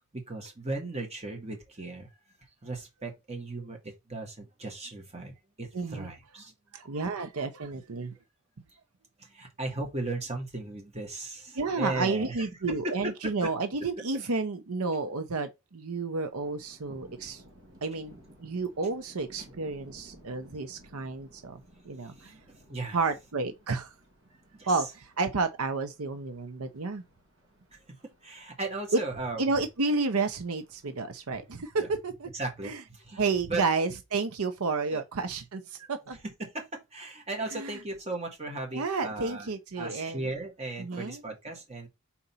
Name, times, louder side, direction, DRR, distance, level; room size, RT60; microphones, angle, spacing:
voice 1, 0.1-2.1 2.6-6.5 9.2-12.9 13.2-13.3 22.2-22.4 22.7-23.0 24.5-24.7 28.2-29.4 31.8-31.9 32.3-33.2 33.5-33.6 34.9-35.0 36.4-39.5 39.8-41.9, right 2 dB, 30° right, 1.7 m, -36 dB
voice 2, 5.7-6.1 6.7-8.2 11.5-17.4 17.8-22.3 22.9-23.9 24.7-27.0 28.9-29.0 29.4-32.3 32.6-32.8 33.2-36.2 37.5-37.8 38.7-40.2 40.8-41.2, right 3 dB, 80° right, 0.7 m, -31 dB
Thunder, 16.2-32.1, right 1 dB, 55° right, 1.9 m, -57 dB
4.3 x 4.0 x 5.5 m
head